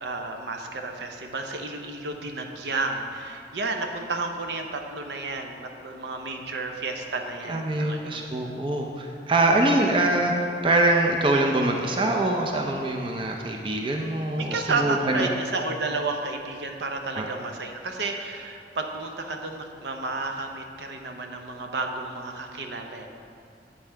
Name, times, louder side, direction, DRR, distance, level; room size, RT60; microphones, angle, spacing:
voice 1, 0.0-8.3 9.7-9.8 14.4-23.1, right 3 dB, 70° right, 4 dB, 0.7 m, -31 dB
voice 2, 7.5-15.2 17.1-17.3, right 2 dB, 30° right, 1 dB, 0.5 m, -24 dB
8.5 x 5.4 x 4.5 m, 2.3 s
head